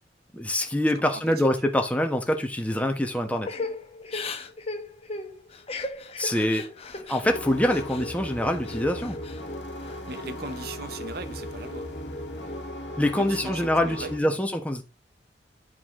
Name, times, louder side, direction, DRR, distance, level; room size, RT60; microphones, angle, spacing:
voice 1, 0.3-3.5 6.2-6.7 7.1-9.2 13.0-14.8, left 1 dB, 10° left, 1.2 m, -25 dB
voice 2, 1.1-1.5 9.8-11.9 13.2-14.3, right 3 dB, 60° right, 0.8 m, -39 dB
Crying sobbing / Breathing, 3.4-8.1 8.4-9.4 9.8-10.6, left 3 dB, 35° left, 1.1 m, -37 dB
sound 1, 7.2-14.2, left 1 dB, 90° left, 1.8 m, -37 dB
11.0 x 4.9 x 3.7 m
head